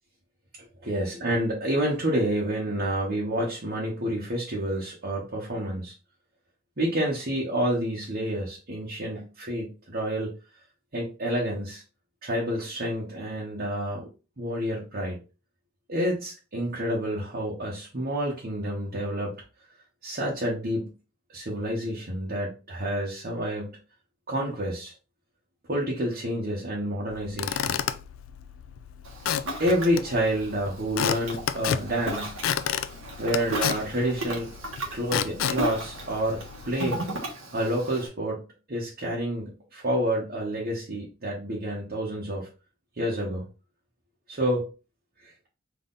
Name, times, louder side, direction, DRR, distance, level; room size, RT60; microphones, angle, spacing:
voice 1, 0.6-5.9 6.8-10.3 10.9-11.8 12.2-14.1 14.4-15.2 15.9-19.3 20.0-20.9 21.3-23.8 24.3-24.9 25.7-27.5 29.6-32.4 33.2-34.5 34.9-37.0 37.5-38.4 38.7-42.5 43.0-43.5 44.3-44.6 45.2-45.3, right 1 dB, 50° right, -4 dB, 1.3 m, -29 dB
Squeak / Wood, 27.1-36.7, left 8 dB, 75° left, 0.4 m, -32 dB
Ocean, 29.0-38.1, right 1 dB, 85° right, 1.4 m, -36 dB
3.8 x 3.4 x 3.9 m, 0.32 s
head